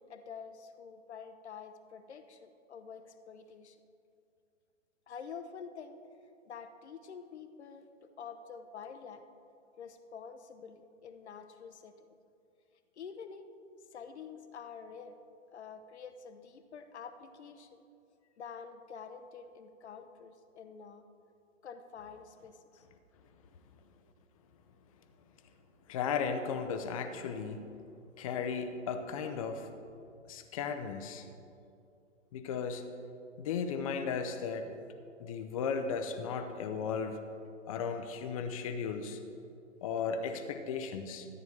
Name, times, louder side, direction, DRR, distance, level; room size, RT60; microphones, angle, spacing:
voice 1, 0.0-3.8 5.1-6.0 6.4-9.2 9.8-12.1 13.0-13.5 13.9-15.2 15.5-17.8 18.4-21.0 21.6-22.9, left 6 dB, 60° left, 8 dB, 0.8 m, -48 dB
voice 2, 25.9-27.7 28.2-29.7 30.2-31.3 32.3-32.8 33.4-34.7 35.2-37.2 37.7-39.2 39.8-41.3, left 6 dB, 30° left, 7 dB, 0.6 m, -35 dB
13.5 x 9.0 x 3.3 m, 2.6 s
figure-of-eight pair, 125°, 38 cm